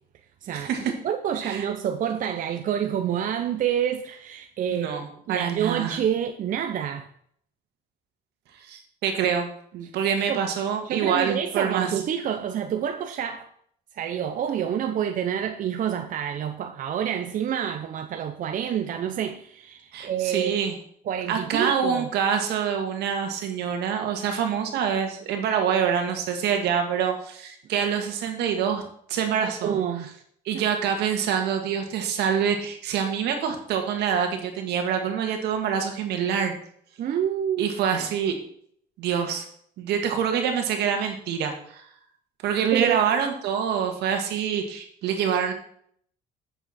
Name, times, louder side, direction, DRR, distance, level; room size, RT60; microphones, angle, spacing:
voice 1, 0.5-0.9 1.4-1.7 4.7-6.0 8.6-12.0 19.9-20.8 21.3-28.8 29.1-29.7 30.5-36.5 37.6-38.3 39.0-39.4 39.8-41.8 42.4-45.5, right 7 dB, 80° right, 1.7 m, -26 dB
voice 2, 1.0-5.0 5.3-7.1 10.3-10.4 10.8-13.5 13.9-20.6 21.1-22.1 29.4-30.1 30.5-30.6 37.0-37.7 42.7-43.0, right 9 dB, 50° right, 0.7 m, -28 dB
8.5 x 7.0 x 4.3 m
cardioid pair, 110°, 17 cm